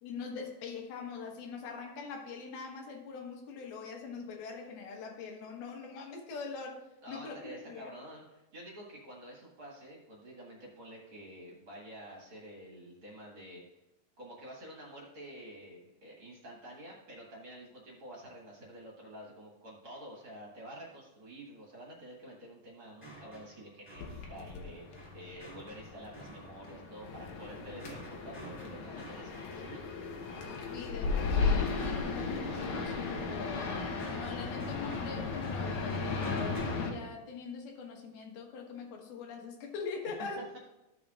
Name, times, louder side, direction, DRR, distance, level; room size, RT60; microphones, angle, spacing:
voice 1, 0.0-7.9 30.7-33.7 34.1-40.5, left 5 dB, 85° left, 1 dB, 3.3 m, -43 dB
voice 2, 7.0-13.6 14.2-29.9 40.4-40.6, right 1 dB, 45° right, -3 dB, 1.9 m, -49 dB
sound 1, 23.0-30.7 33.5-36.8, right 2 dB, 5° left, 2.7 m, -52 dB
sound 2, 24.0-36.9, left 4 dB, 65° left, 2.1 m, -35 dB
14.5 x 6.9 x 2.5 m, 0.96 s
omnidirectional pair, 4.3 m